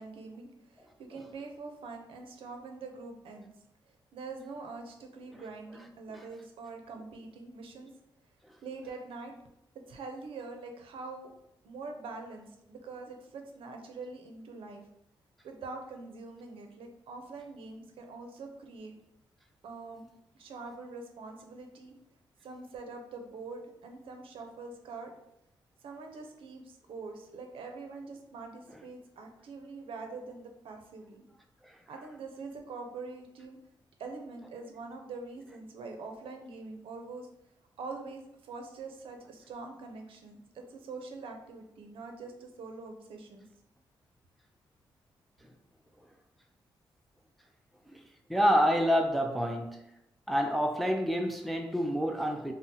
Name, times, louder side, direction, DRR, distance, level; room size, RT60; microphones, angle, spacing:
voice 1, 0.0-3.5 4.1-7.9 8.6-9.3 9.9-11.3 11.6-14.8 15.4-18.9 19.6-20.1 20.3-21.9 22.4-25.1 25.8-31.3 31.9-33.6 34.0-37.3 37.8-43.4, right 3 dB, 85° right, 4 dB, 0.5 m, -44 dB
voice 2, 48.3-49.8 50.3-52.5, equal, ahead, 3 dB, 0.3 m, -27 dB
2.7 x 2.0 x 3.7 m, 0.82 s
wide cardioid pair, 125°, 9 cm